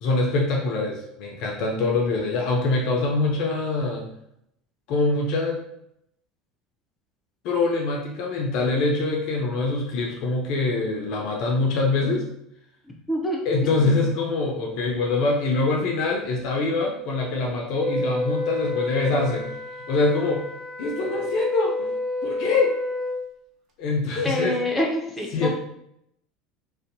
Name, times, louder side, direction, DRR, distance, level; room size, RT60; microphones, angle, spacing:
voice 1, 0.0-4.1 4.9-5.6 7.4-12.3 13.5-19.6 19.9-20.4 20.8-21.9 22.2-22.7 23.8-24.6 25.3-25.5, left 3 dB, 55° left, 0 dB, 0.4 m, -24 dB
voice 2, 13.1-13.4 13.7-13.9 24.2-25.5, left 1 dB, 10° left, -1 dB, 0.7 m, -26 dB
Wind instrument woodwind instrument, 17.8-23.2, left 1 dB, 50° right, 0.5 m, -30 dB
2.5 x 2.1 x 2.6 m, 0.77 s
figure-of-eight pair, 70°, 0 cm